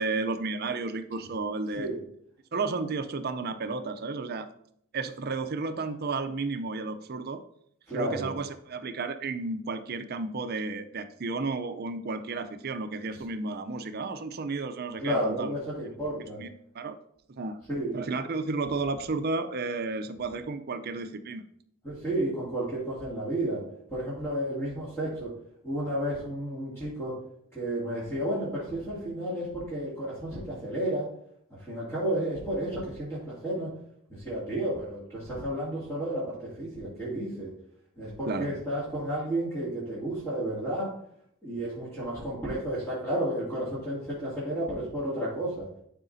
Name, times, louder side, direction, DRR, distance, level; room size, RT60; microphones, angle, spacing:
voice 1, 0.0-1.9 2.5-4.5 4.9-7.4 7.9-15.5 16.4-16.5 16.7-17.0 17.4-17.6 17.9-21.4 38.3-38.5, right 3 dB, 45° right, 10 dB, 0.5 m, -32 dB
voice 2, 7.9-8.3 15.0-16.4 17.7-18.0 21.8-23.6 23.9-25.3 25.6-27.2 27.5-31.1 31.5-33.7 34.1-37.5 38.0-40.9 41.4-45.7, right 1 dB, 10° left, -9 dB, 2.3 m, -32 dB
11.0 x 4.9 x 2.6 m, 0.70 s
head